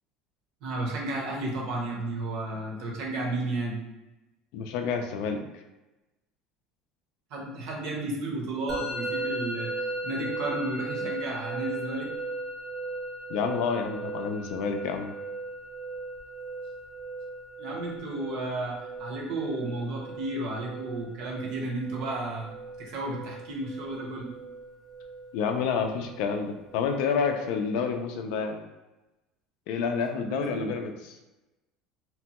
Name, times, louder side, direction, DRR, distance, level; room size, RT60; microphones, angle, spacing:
voice 1, 0.6-3.8 7.3-9.7 10.0-12.1 17.6-24.3 30.3-30.7, right 2 dB, 50° right, -1 dB, 0.7 m, -33 dB
voice 2, 4.5-5.4 13.3-15.2 25.3-28.6 29.7-30.9, left 6 dB, 65° left, 5 dB, 0.3 m, -29 dB
Musical instrument, 8.7-27.6, right 2 dB, 15° right, 0.4 m, -38 dB
2.9 x 2.2 x 2.8 m, 1.0 s
cardioid pair, 170°, 0 cm